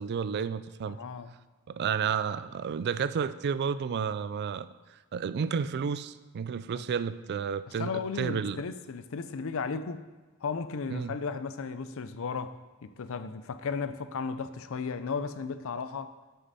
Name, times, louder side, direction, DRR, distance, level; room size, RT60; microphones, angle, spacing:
voice 1, 0.0-1.0 1.7-4.7 5.1-7.9 8.2-8.6 10.9-11.2, right 6 dB, 50° right, 15 dB, 0.3 m, -31 dB
voice 2, 0.9-1.3 6.7-6.8 7.8-10.0 10.4-16.1, left 5 dB, 65° left, 12 dB, 0.5 m, -35 dB
9.3 x 6.6 x 4.1 m, 1.2 s
head